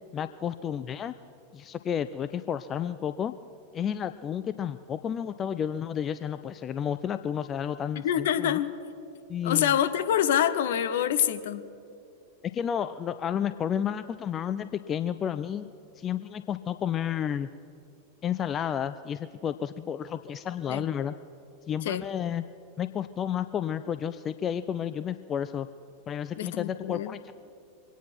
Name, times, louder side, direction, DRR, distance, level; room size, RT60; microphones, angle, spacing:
voice 1, 0.1-1.1 1.5-3.3 3.7-8.6 9.3-9.8 12.4-15.7 16.0-17.5 18.2-21.1 21.7-22.4 22.8-25.7 26.1-27.3, left 9 dB, 25° left, 12 dB, 0.4 m, -31 dB
voice 2, 8.0-8.7 9.4-11.7 20.7-20.8 21.8-22.0 26.4-27.2, left 10 dB, 55° left, 10 dB, 0.8 m, -26 dB
24.0 x 9.2 x 6.0 m, 2.6 s
figure-of-eight pair, 90°, 0 cm